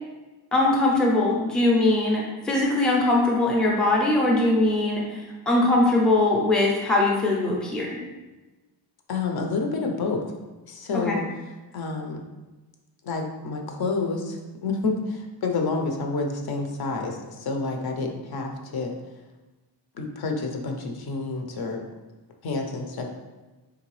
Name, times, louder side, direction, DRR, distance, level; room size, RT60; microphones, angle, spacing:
voice 1, 0.5-8.0 11.1-11.2, left 2 dB, ahead, -3 dB, 0.5 m, -21 dB
voice 2, 9.1-10.2 10.7-11.2 11.7-12.2 13.0-18.9 20.0-21.8 22.4-23.1, left 3 dB, 60° left, 3 dB, 0.6 m, -29 dB
3.7 x 3.2 x 3.1 m, 1.1 s
wide cardioid pair, 170°, 43 cm